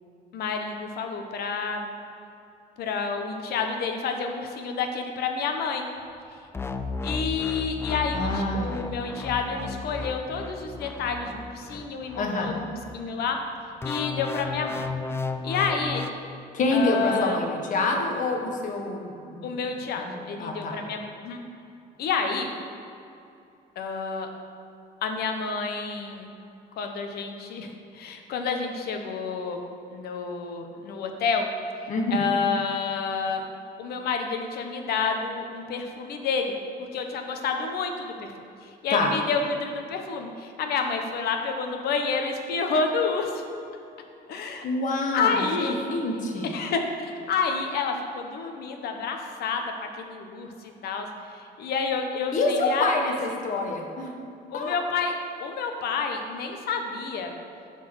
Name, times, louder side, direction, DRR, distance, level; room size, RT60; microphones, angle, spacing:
voice 1, 0.3-1.8 2.8-5.9 7.0-13.4 13.8-14.9 15.4-16.1 16.7-17.4 19.4-21.4 22.0-22.5 23.8-24.3 25.0-26.3 26.8-29.6 29.9-31.5 32.1-33.4 33.8-36.6 36.9-38.3 38.6-43.4 44.3-44.7 45.1-45.8 46.4-53.2 54.5-55.1 55.4-57.3, left 5 dB, 70° left, 4 dB, 1.0 m, -29 dB
sound 1, 6.5-13.1 13.8-16.1, left 3 dB, 15° left, 0.4 m, -34 dB
voice 2, 8.1-8.7 12.2-12.5 16.5-19.6 20.0-20.8 31.9-32.2 38.9-39.1 44.6-46.5 52.3-54.1 54.5-54.7, left 2 dB, 50° left, 2 dB, 1.2 m, -27 dB
8.3 x 4.3 x 6.3 m, 2.7 s
cardioid pair, 110°, 17 cm